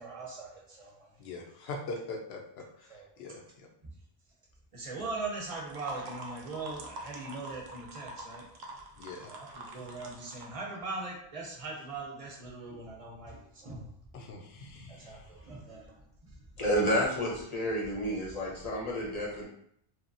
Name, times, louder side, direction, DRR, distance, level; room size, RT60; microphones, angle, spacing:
voice 1, 0.0-1.1 2.9-3.1 4.7-8.4 9.3-13.9 14.9-16.0, right 3 dB, 40° right, -3 dB, 0.6 m, -40 dB
voice 2, 1.2-3.7 9.0-9.8 14.1-15.2, left 3 dB, 80° left, 2 dB, 0.8 m, -43 dB
sound 1, 5.4-10.5, right 1 dB, 85° right, 0.8 m, -45 dB
voice 3, 16.6-19.4, equal, 40° left, -4 dB, 0.8 m, -30 dB
2.8 x 2.2 x 2.5 m, 0.70 s
omnidirectional pair, 1.0 m